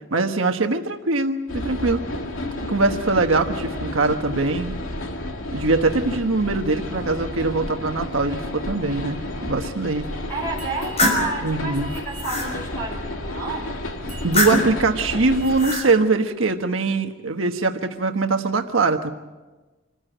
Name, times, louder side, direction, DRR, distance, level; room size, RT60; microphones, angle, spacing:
voice 1, 0.1-2.0 2.7-4.8 5.5-10.1 11.4-11.9 14.2-19.1, right 3 dB, 80° right, 5 dB, 1.3 m, -22 dB
sound 1, 1.5-15.7, left 1 dB, 80° left, 2.7 m, -31 dB
voice 2, 10.3-13.7, right 2 dB, 10° left, -2 dB, 6.6 m, -30 dB
sound 2, 10.6-11.3 11.8-12.5 14.1-14.8 15.4-15.9, left 1 dB, 30° left, 5.2 m, -23 dB
26.0 x 15.0 x 9.1 m, 1.2 s
head